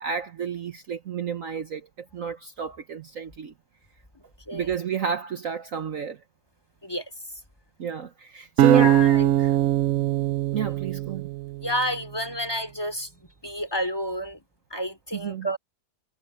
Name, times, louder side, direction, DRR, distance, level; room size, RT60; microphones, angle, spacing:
voice 1, 0.0-3.5 4.5-6.2 7.8-8.9 10.5-11.3 15.1-15.5, right 6 dB, 55° right, 1.3 m, -30 dB
voice 2, 4.1-4.7 6.8-7.1 8.7-9.5 11.6-14.4 14.7-15.6, equal, 15° left, 2.8 m, -30 dB
sound 1, 8.6-11.8, right 12 dB, 70° right, 0.7 m, -21 dB
omnidirectional pair, 1.8 m